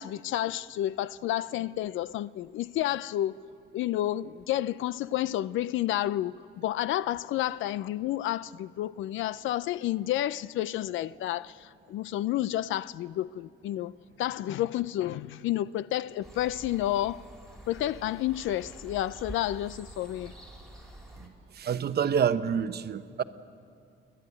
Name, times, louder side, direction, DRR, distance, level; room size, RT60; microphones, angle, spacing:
voice 1, 0.0-3.3 3.7-17.3 17.7-20.3, left 13 dB, 80° left, 0.5 m, -30 dB
sound 1, 16.2-21.3, right 1 dB, ahead, 4.6 m, -47 dB
voice 2, 21.2-23.2, right 7 dB, 55° right, 0.9 m, -28 dB
28.0 x 11.5 x 9.8 m
cardioid pair, 90°, 20 cm